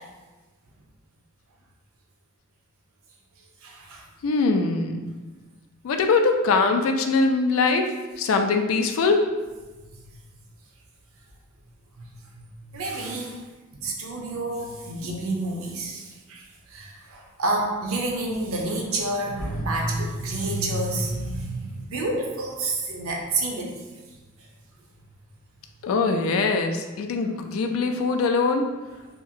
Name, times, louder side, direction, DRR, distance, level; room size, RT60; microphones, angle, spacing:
voice 1, 3.6-4.0 12.7-13.3 13.8-16.0 16.3-16.4 16.7-23.7, right 2 dB, 90° right, 0 dB, 0.6 m, -28 dB
voice 2, 4.2-5.1 5.8-7.9 8.2-9.2 25.8-28.6, left 4 dB, 75° left, 5 dB, 0.3 m, -22 dB
2.8 x 2.4 x 2.7 m, 1.2 s
head